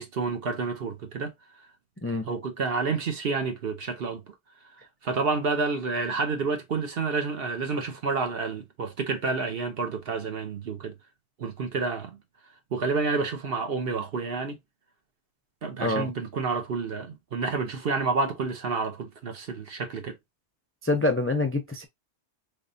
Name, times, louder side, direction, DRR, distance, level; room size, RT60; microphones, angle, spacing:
voice 1, 0.0-1.3 2.3-4.2 5.0-10.9 11.4-12.2 12.7-14.6 15.6-20.1, right 4 dB, 60° right, 1.1 m, -29 dB
voice 2, 2.0-2.3 15.8-16.1 20.8-21.8, left 2 dB, 20° left, 0.4 m, -26 dB
3.5 x 3.2 x 2.6 m
omnidirectional pair, 1.2 m